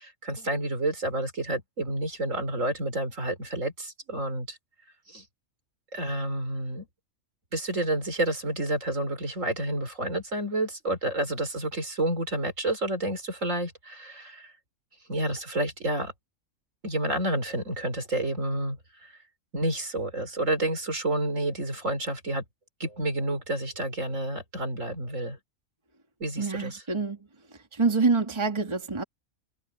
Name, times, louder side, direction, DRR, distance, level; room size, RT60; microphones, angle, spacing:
voice 1, 0.0-4.6 5.1-5.2 5.9-6.9 7.5-14.5 15.1-16.1 16.8-19.1 19.5-22.4 22.8-25.4 26.2-26.8, right 1 dB, 70° right, 4.8 m, -30 dB
voice 2, 26.4-27.2 27.7-29.0, right 4 dB, 20° right, 1.9 m, -26 dB
omnidirectional pair, 1.4 m